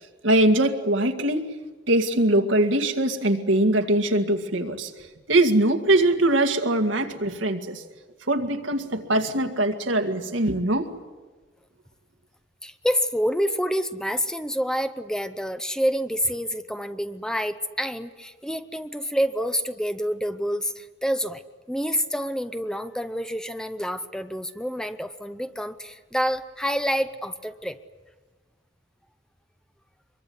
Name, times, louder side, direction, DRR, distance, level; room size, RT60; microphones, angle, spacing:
voice 1, 0.2-1.4 1.9-7.8 8.3-10.9, right 1 dB, 80° right, 5 dB, 2.2 m, -22 dB
voice 2, 12.6-21.4 21.7-27.8, equal, 5° left, 11 dB, 0.7 m, -27 dB
25.0 x 22.5 x 9.6 m, 1.3 s
head